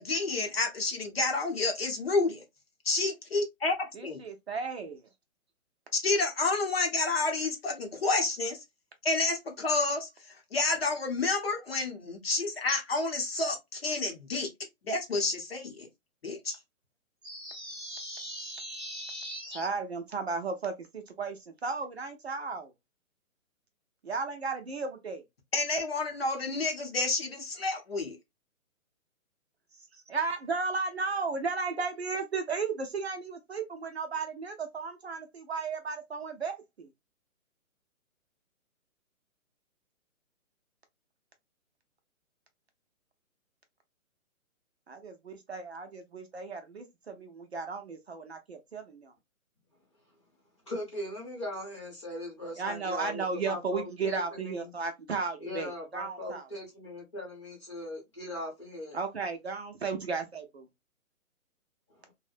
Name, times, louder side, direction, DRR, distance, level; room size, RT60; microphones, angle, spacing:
voice 1, 0.0-2.4 2.9-4.2 5.9-8.6 9.0-10.1 10.5-14.5 14.8-15.9 16.2-16.6 25.5-28.2, left 3 dB, 45° left, 0.7 m, -29 dB
voice 2, 3.9-5.0 19.5-22.7 24.0-25.2 30.1-36.9 44.9-49.1 52.6-56.5 58.9-60.7, right 4 dB, 50° right, 0.5 m, -34 dB
sound 1, 17.2-19.7, equal, 5° right, 0.7 m, -40 dB
voice 3, 50.7-54.7 55.4-59.0, left 1 dB, 20° left, 0.9 m, -39 dB
2.5 x 2.1 x 2.4 m
hypercardioid pair, 175°, 41 cm